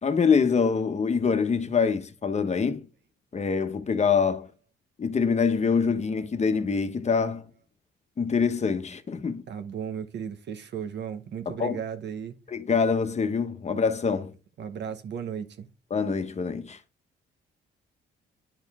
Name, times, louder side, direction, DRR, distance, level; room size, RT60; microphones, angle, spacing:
voice 1, 0.0-2.9 3.3-4.5 5.0-7.5 8.2-9.4 11.5-11.8 12.5-14.3 15.9-16.8, left 5 dB, 35° left, 1.1 m, -25 dB
voice 2, 9.5-12.4 14.6-15.7, right 7 dB, 60° right, 1.1 m, -35 dB
10.5 x 4.5 x 3.6 m
cardioid pair, 90°, 20 cm